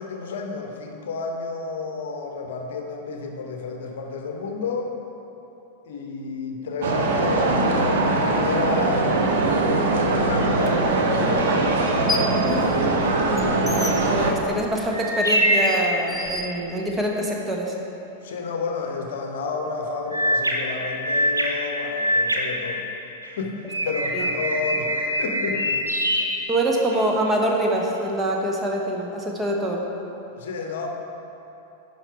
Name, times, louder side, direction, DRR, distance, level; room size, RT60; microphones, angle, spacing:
voice 1, 0.0-4.9 5.8-9.2 10.0-11.7 12.2-12.5 13.5-13.8 18.2-22.9 23.2-23.6 23.8-25.8 30.4-30.9, left 4 dB, 60° left, 3 dB, 0.8 m, -31 dB
sound 1, 6.8-14.3, right 2 dB, 55° right, 0.9 m, -21 dB
sound 2, 10.6-10.7 11.8-12.4 12.8-17.2, left 2 dB, 5° left, 0.7 m, -33 dB
voice 2, 12.5-13.2 14.1-17.8 24.1-24.3 26.5-29.8, right 1 dB, 15° right, 0 dB, 1.1 m, -25 dB
sound 3, 14.9-16.6 20.1-23.3 23.7-27.1, equal, 85° right, 0.9 m, -24 dB
10.5 x 5.4 x 4.5 m, 3.0 s
figure-of-eight pair, 90°, 0 cm